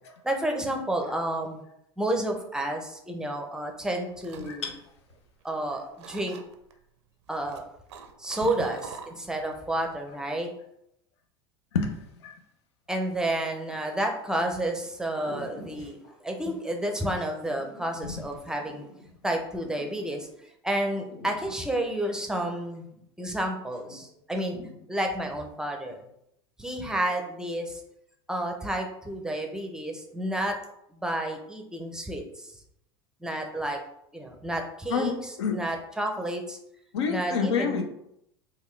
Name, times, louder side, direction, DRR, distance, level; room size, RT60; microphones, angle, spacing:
voice 1, 0.2-1.6 2.0-4.7 5.4-6.4 7.3-7.6 8.2-10.5 12.9-16.0 16.2-18.9 19.2-20.3 20.6-22.9 23.2-24.6 24.9-26.0 26.6-27.8 28.3-30.6 30.9-32.5 33.2-33.8 34.1-36.6 37.1-37.8, right 1 dB, 5° right, 3 dB, 0.6 m, -30 dB
sound 1, 3.8-5.6 6.0-6.7 7.3-9.5 9.8-10.2, right 6 dB, 75° right, 0.4 m, -45 dB
voice 2, 4.4-4.8 11.7-12.3 18.0-18.2 34.9-35.6 36.9-37.8, left 5 dB, 75° left, 6 dB, 0.6 m, -28 dB
sound 2, 13.7-14.2 14.8-14.9 15.1-20.4 20.9-23.4 23.6-24.2 24.5-25.5, left 1 dB, 55° left, 1.2 m, -49 dB
3.5 x 2.3 x 3.2 m, 0.77 s
hypercardioid pair, 85°, 14 cm